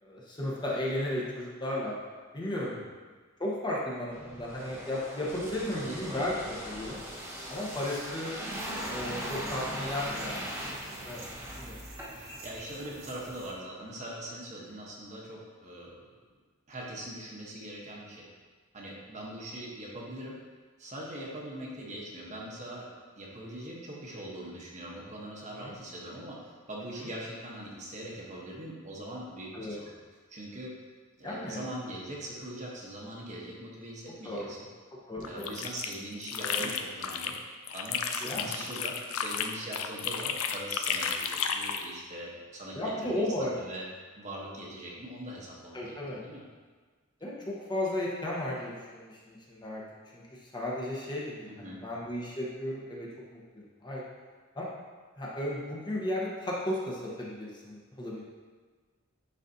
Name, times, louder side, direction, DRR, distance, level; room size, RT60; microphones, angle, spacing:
voice 1, 0.0-1.9 2.3-2.7 3.4-6.3 6.6-7.0 7.5-8.3 8.8-10.8 11.1-11.2 11.6-11.8 25.6-25.7 29.5-29.8 31.2-31.6 34.2-34.5 35.1-35.5 36.4-36.7 38.2-38.6 42.7-43.5 45.7-46.2 47.2-49.8 50.1-50.2 50.5-54.0 54.5-54.7 55.2-58.2, left 1 dB, 20° left, -5 dB, 1.0 m, -34 dB
sound 1, 4.1-12.5 12.8-12.9, equal, 10° right, 1.2 m, -40 dB
voice 2, 5.7-6.5 12.1-16.1 16.7-18.3 18.7-20.4 20.8-29.9 30.3-30.7 31.2-34.6 35.2-37.3 37.7-43.9 44.2-46.4 51.5-51.8, right 1 dB, 35° right, -3 dB, 1.1 m, -42 dB
sound 2, 8.5-13.5, right 1 dB, 65° right, 1.5 m, -49 dB
sound 3, 35.2-37.4 37.7-41.9, left 7 dB, 85° left, 0.5 m, -33 dB
10.0 x 4.1 x 2.8 m, 1.4 s
head